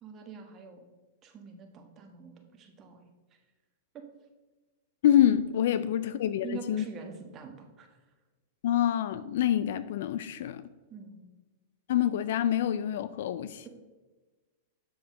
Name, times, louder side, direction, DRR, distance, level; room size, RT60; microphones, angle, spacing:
voice 1, 0.0-0.8 1.2-3.1 3.9-4.0 6.4-8.0 10.9-11.2, right 5 dB, 30° right, 4 dB, 1.3 m, -45 dB
voice 2, 5.0-6.8 8.6-10.6 11.9-13.7, left 11 dB, 65° left, 14 dB, 0.3 m, -26 dB
7.1 x 7.0 x 3.7 m, 1.2 s
hypercardioid pair, 110°, 0 cm